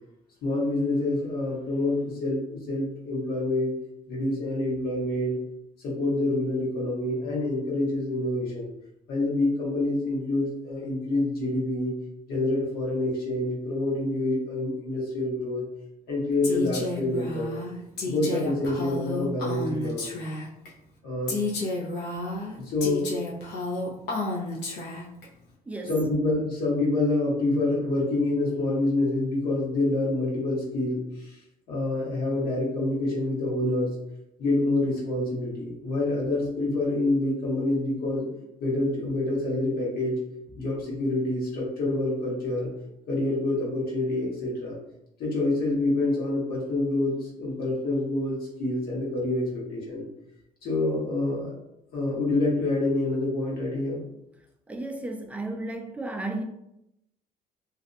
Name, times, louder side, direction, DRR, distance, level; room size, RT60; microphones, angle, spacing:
voice 1, 0.4-3.7 4.1-5.4 5.8-8.7 9.1-11.9 12.3-15.7 16.1-17.6 18.0-20.2 21.0-21.3 22.6-23.3 25.9-31.4 31.7-33.9 34.4-38.3 38.6-40.2 40.6-42.7 43.1-44.8 45.2-50.0 50.6-51.5 51.9-54.0, left 2 dB, 65° left, -4 dB, 1.1 m, -27 dB
Female speech woman speaking, 16.4-20.7 21.3-25.2, left 2 dB, 80° left, 0.7 m, -31 dB
voice 2, 25.7-26.0 54.7-56.4, right 2 dB, 10° right, 4 dB, 0.3 m, -33 dB
2.5 x 2.1 x 2.6 m, 0.82 s
cardioid pair, 110°, 17 cm